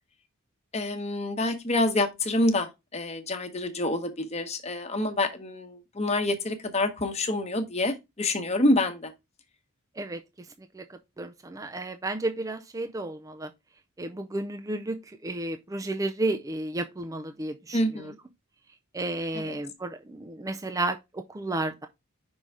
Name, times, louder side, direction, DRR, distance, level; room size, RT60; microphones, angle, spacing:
voice 1, 0.7-9.1 17.7-18.1 19.3-19.6, left 1 dB, 30° left, 1.1 m, -27 dB
voice 2, 11.2-13.5 14.0-15.0 15.2-18.1 18.9-21.9, right 2 dB, 15° right, 0.4 m, -32 dB
5.5 x 3.8 x 4.6 m
head